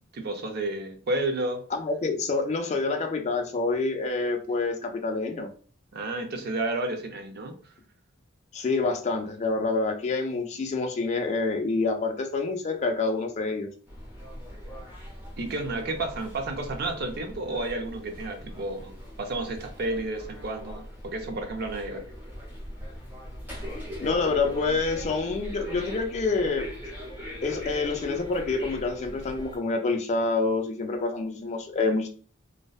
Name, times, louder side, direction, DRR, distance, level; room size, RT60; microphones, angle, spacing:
voice 1, 0.0-1.6 5.9-7.6 15.4-22.1, right 2 dB, 50° right, 4 dB, 0.5 m, -31 dB
voice 2, 1.7-5.5 8.5-13.7 24.0-26.7 27.4-32.1, left 3 dB, 35° left, 5 dB, 0.3 m, -27 dB
sound 1, 13.9-29.6, equal, 10° right, 0.7 m, -40 dB
2.6 x 2.1 x 2.3 m, 0.41 s
head